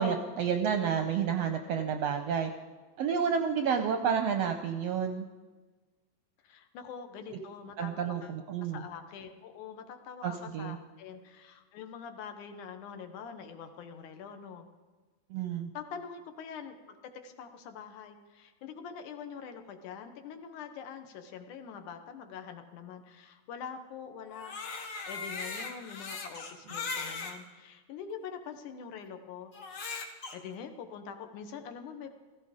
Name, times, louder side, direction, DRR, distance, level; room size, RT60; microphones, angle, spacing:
voice 1, 0.0-2.5 3.0-5.3 7.3-7.4 7.8-8.8 10.2-10.8 15.3-15.7, right 7 dB, 75° right, 6 dB, 1.5 m, -30 dB
voice 2, 6.4-14.7 15.5-29.5 29.8-30.0 30.3-32.2, left 7 dB, 75° left, 7 dB, 2.6 m, -45 dB
Crying sobbing, 24.2-27.4 28.1-28.2 29.5-30.3, left 4 dB, 45° left, 1.7 m, -39 dB
15.5 x 15.5 x 5.1 m, 1.3 s
omnidirectional pair, 3.6 m